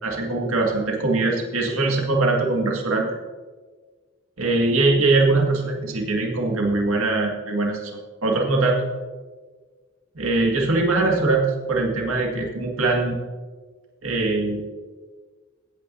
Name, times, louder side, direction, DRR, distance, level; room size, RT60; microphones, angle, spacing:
voice 1, 0.0-3.1 4.4-8.9 10.2-13.1 14.0-14.6, right 3 dB, 80° right, -1 dB, 2.0 m, -22 dB
16.0 x 9.1 x 2.7 m, 1.4 s
head